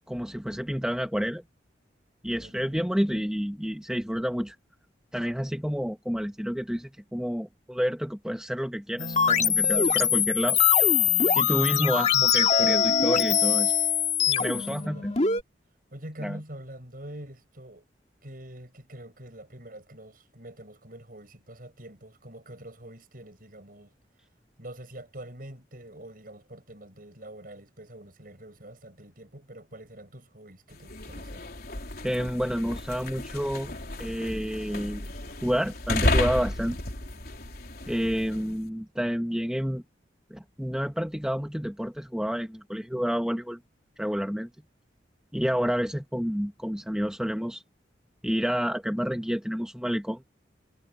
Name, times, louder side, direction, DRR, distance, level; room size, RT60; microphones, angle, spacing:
voice 1, 0.1-1.4 2.2-4.6 5.1-10.6 11.3-13.7 14.4-15.1 16.2-16.4 32.0-33.7 34.0-35.1 35.4-36.8 37.9-39.8 40.3-43.6 44.0-44.5 45.3-47.6 48.2-50.2, equal, 5° right, 1.3 m, -29 dB
voice 2, 2.4-2.8 14.2-15.2 15.9-17.9 18.2-23.9 24.6-31.4, right 1 dB, 50° right, 7.8 m, -45 dB
sound 1, 9.0-15.4, left 8 dB, 35° left, 2.3 m, -23 dB
sound 2, 30.7-38.6, left 1 dB, 55° left, 4.3 m, -32 dB
head